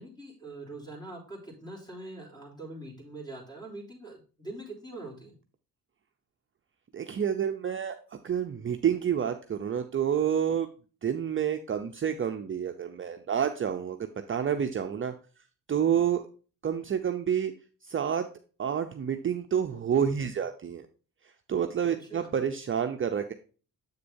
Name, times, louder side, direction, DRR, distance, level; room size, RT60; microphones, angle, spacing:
voice 1, 0.0-5.3 21.9-22.3, right 2 dB, 10° left, -1 dB, 3.3 m, -43 dB
voice 2, 6.9-8.0 8.2-10.7 11.0-15.1 15.7-16.2 16.6-17.5 17.9-18.2 18.6-20.9 21.5-23.3, right 8 dB, 35° right, 5 dB, 0.6 m, -28 dB
7.9 x 6.6 x 2.7 m, 0.36 s
cardioid pair, 100°, 34 cm